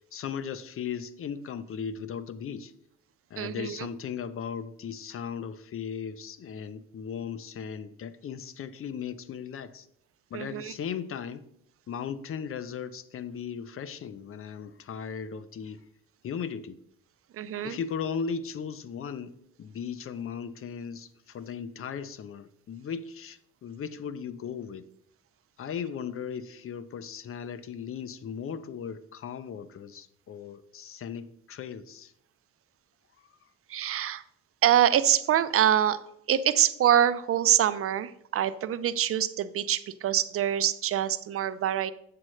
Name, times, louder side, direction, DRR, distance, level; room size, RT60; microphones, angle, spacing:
voice 1, 0.1-2.7 3.3-9.9 10.3-11.4 11.9-15.8 16.2-16.8 17.6-24.9 25.6-32.1, left 7 dB, 45° left, 15 dB, 0.6 m, -37 dB
voice 2, 3.4-3.9 10.3-10.7 17.3-17.8 33.7-34.2 34.6-36.0 36.3-41.9, right 10 dB, 50° right, 14 dB, 0.5 m, -25 dB
7.7 x 7.4 x 3.1 m, 0.73 s
cardioid pair, 90°, 30 cm